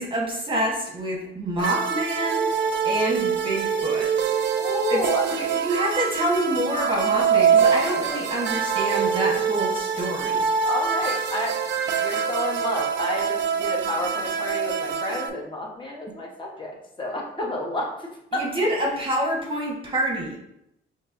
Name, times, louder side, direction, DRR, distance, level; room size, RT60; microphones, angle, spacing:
voice 1, 0.0-2.4 2.8-4.1 4.9-5.0 5.3-10.5 18.3-20.4, right 1 dB, 25° right, -3 dB, 1.1 m, -27 dB
sound 1, 1.6-15.3, right 6 dB, 65° right, 0.5 m, -24 dB
voice 2, 4.6-5.2 7.9-8.3 10.6-11.6 11.9-18.8, left 1 dB, 25° left, -1 dB, 1.0 m, -31 dB
5.3 x 2.9 x 2.5 m, 0.80 s
cardioid pair, 90°, 20 cm